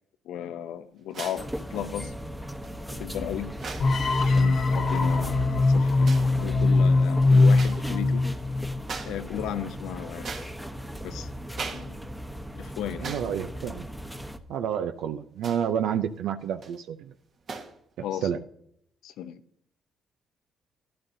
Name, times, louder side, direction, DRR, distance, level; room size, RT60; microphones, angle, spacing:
voice 1, 0.3-2.1 2.9-3.5 4.2-6.1 6.4-8.3 9.0-10.3 11.0-11.3 11.7-12.0 12.6-13.1 18.0-18.3 19.0-19.4, left 10 dB, 90° left, 10 dB, 0.8 m, -35 dB
sound 1, 1.1-1.5 2.6-2.7 3.5-4.0 5.1-5.3 6.0-6.3 7.5-7.8 8.2-8.4 8.8-9.2 9.6-10.9 11.5-11.9 12.2-12.3 13.0-13.4 13.7-13.9 15.4-15.8 16.4-16.8 17.5-17.8, right 5 dB, 60° right, 1.6 m, -39 dB
sound 2, 1.4-14.4, equal, 5° right, 0.9 m, -37 dB
sound 3, 3.8-8.9, left 3 dB, 50° left, 0.8 m, -21 dB
voice 2, 13.0-13.9 14.5-17.1 18.2-18.4, right 9 dB, 85° right, 8 dB, 0.5 m, -29 dB
12.0 x 11.5 x 2.7 m, 0.70 s
cardioid pair, 90°, 0 cm